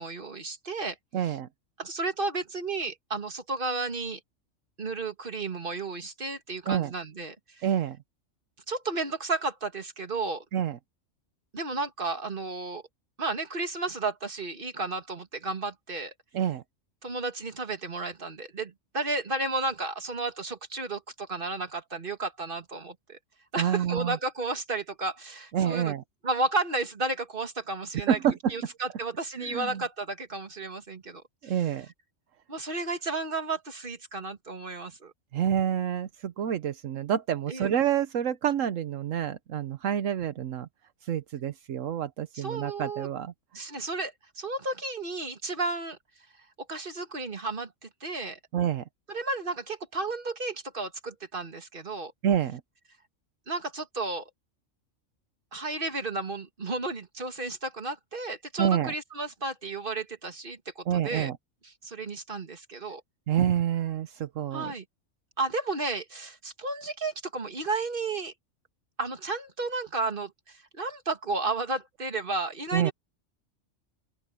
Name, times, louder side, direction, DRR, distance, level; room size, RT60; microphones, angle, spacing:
voice 1, 0.0-1.0 1.2-1.4 1.8-4.2 4.8-7.6 8.7-10.4 11.5-12.8 13.2-16.1 17.0-23.2 23.5-25.9 26.2-28.2 28.5-31.5 32.5-35.1 37.5-37.7 42.3-43.1 43.5-46.0 46.7-48.4 49.1-52.1 53.5-54.2 55.5-61.3 61.8-63.0 64.5-64.8 65.4-68.3 69.0-72.9, right 3 dB, 40° right, 2.3 m, -33 dB
voice 2, 1.1-1.5 6.7-6.9 7.6-8.0 10.5-10.8 16.3-16.6 23.6-24.2 25.5-26.0 27.9-28.4 29.4-29.8 31.4-31.9 35.3-40.7 41.0-43.3 48.5-48.8 52.2-52.6 58.6-58.9 60.9-61.4 63.3-64.7 72.7-72.9, right 9 dB, 80° right, 1.2 m, -28 dB
open air
omnidirectional pair, 1.3 m